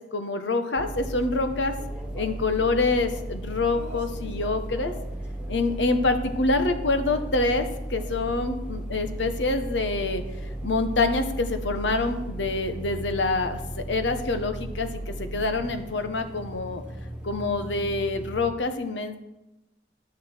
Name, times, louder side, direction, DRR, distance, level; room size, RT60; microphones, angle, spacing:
voice 1, 0.1-1.7 2.1-4.9 5.5-10.2 10.6-16.8 17.2-19.2, left 3 dB, 75° left, 8 dB, 1.0 m, -26 dB
sound 1, 0.8-18.5, right 1 dB, 5° right, 1.5 m, -35 dB
11.0 x 8.3 x 4.5 m, 0.95 s
head